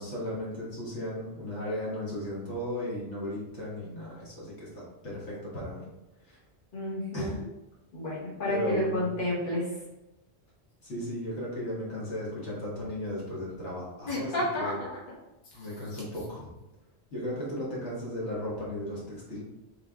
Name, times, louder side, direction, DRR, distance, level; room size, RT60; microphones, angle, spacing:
voice 1, 0.0-5.9 6.2-6.4 7.1-7.4 8.5-9.1 10.8-14.7 15.5-16.5 17.1-19.4, left 1 dB, 85° left, -6 dB, 1.9 m, -35 dB
voice 2, 6.7-7.3 7.9-9.7 14.1-15.0 15.5-15.7, left 1 dB, 50° left, -6 dB, 1.5 m, -31 dB
4.0 x 3.6 x 3.6 m, 0.99 s
omnidirectional pair, 1.1 m